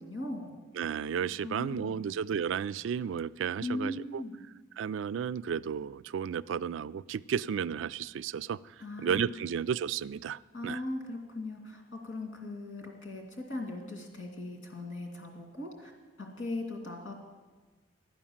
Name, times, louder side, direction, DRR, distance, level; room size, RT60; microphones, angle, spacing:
voice 1, 0.0-0.6 1.4-2.0 3.6-4.4 8.8-9.4 10.5-15.9 16.2-17.1, left 2 dB, 85° left, 2 dB, 2.6 m, -39 dB
voice 2, 0.8-4.2 4.8-8.6 9.0-10.8, right 7 dB, 80° right, 17 dB, 0.3 m, -33 dB
12.0 x 9.1 x 7.2 m, 1.3 s
head